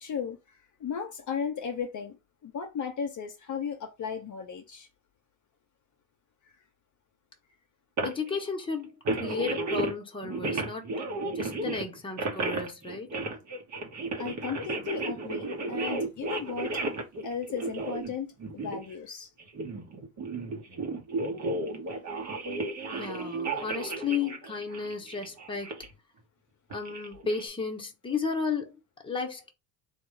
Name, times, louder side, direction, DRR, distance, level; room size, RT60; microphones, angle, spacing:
voice 1, 0.0-2.2 2.4-4.9 14.2-16.8 17.2-19.3, left 6 dB, 35° left, 0.9 m, -35 dB
voice 2, 8.0-10.9 11.3-13.1 22.9-25.7 26.7-28.7 29.0-29.5, left 5 dB, 10° left, 1.0 m, -33 dB
sound 1, 8.0-8.4 9.1-9.9 10.2-18.9 19.4-25.9 26.7-27.4, right 2 dB, 35° right, 1.1 m, -33 dB
3.5 x 2.4 x 3.2 m
hypercardioid pair, 75°, 49 cm